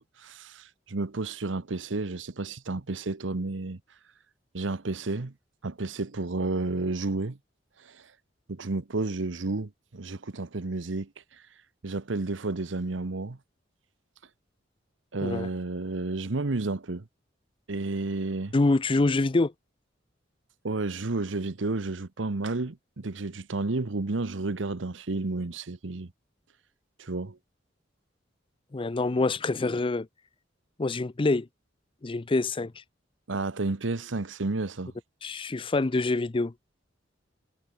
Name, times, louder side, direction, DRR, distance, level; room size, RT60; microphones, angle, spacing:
voice 1, 0.0-3.8 4.5-5.3 5.6-7.4 7.8-8.1 8.5-11.1 11.8-13.4 15.1-17.1 17.7-18.5 20.6-26.1 27.0-27.4 33.3-34.9, right 3 dB, 80° right, 1.0 m, -31 dB
voice 2, 18.5-19.5 28.7-30.1 30.8-31.5 32.0-32.7 35.2-36.5, left 2 dB, 30° left, 0.5 m, -25 dB
head